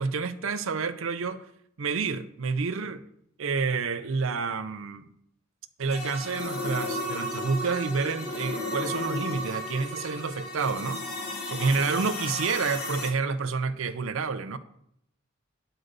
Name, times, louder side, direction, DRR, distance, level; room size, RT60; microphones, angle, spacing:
voice 1, 0.0-1.5 1.8-3.0 3.4-5.1 5.8-11.0 11.5-14.6, right 4 dB, 70° right, 0.6 m, -29 dB
sound 1, 5.9-13.1, left 1 dB, 80° left, 1.3 m, -34 dB
9.0 x 4.4 x 6.7 m
head